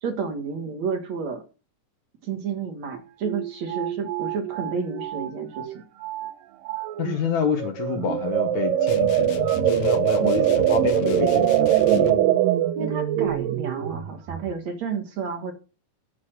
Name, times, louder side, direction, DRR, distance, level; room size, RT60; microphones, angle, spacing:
voice 1, 0.0-1.4 2.2-5.8 12.7-15.5, right 5 dB, 60° right, 2.7 m, -31 dB
sound 1, 2.9-3.0 3.2-5.8 6.0-6.3 6.7-7.2 7.6-14.5, right 11 dB, 85° right, 2.5 m, -23 dB
voice 2, 7.0-12.2, left 6 dB, 60° left, 2.7 m, -28 dB
sound 2, 8.9-12.3, left 11 dB, 80° left, 2.6 m, -36 dB
9.6 x 6.9 x 6.4 m
omnidirectional pair, 3.9 m